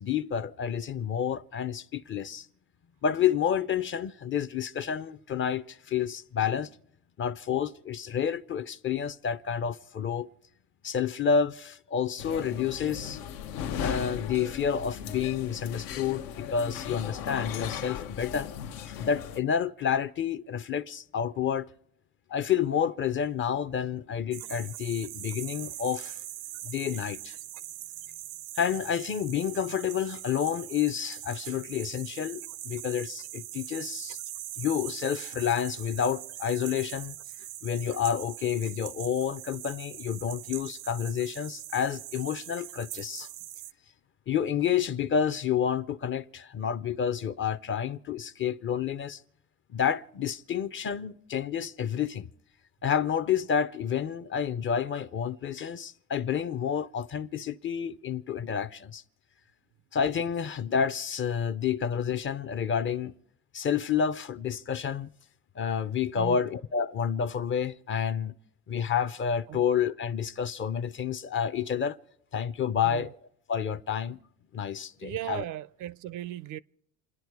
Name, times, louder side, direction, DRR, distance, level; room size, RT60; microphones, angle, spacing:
voice 1, 0.0-2.5 3.0-6.7 7.2-10.3 10.8-13.2 13.8-18.5 19.0-21.7 22.3-26.2 26.6-27.3 28.6-34.2 34.6-37.2 37.6-43.3 44.3-49.2 49.7-52.3 52.8-59.0 59.9-63.1 63.5-65.1 65.6-68.3 68.7-72.0 72.3-73.1 73.5-74.2 74.5-75.4, left 8 dB, 30° left, 0.6 m, -29 dB
sound 1, 12.2-19.4, left 8 dB, 80° left, 1.0 m, -37 dB
sound 2, 24.3-43.7, right 14 dB, 85° right, 0.7 m, -41 dB
voice 2, 75.0-76.6, right 13 dB, 50° right, 0.5 m, -37 dB
29.0 x 10.0 x 4.7 m
supercardioid pair, 95°, 39 cm